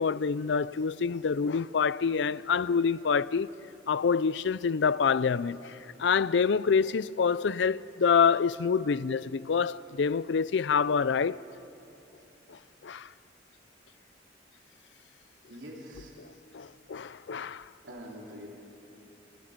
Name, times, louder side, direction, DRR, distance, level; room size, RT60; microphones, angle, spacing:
voice 1, 0.0-3.5 3.9-11.4 12.5-13.1 16.5-17.7, left 6 dB, 75° left, 0.5 m, -27 dB
voice 2, 15.5-16.1 17.8-18.5, equal, 85° right, 3.7 m, -44 dB
29.0 x 26.5 x 5.2 m
head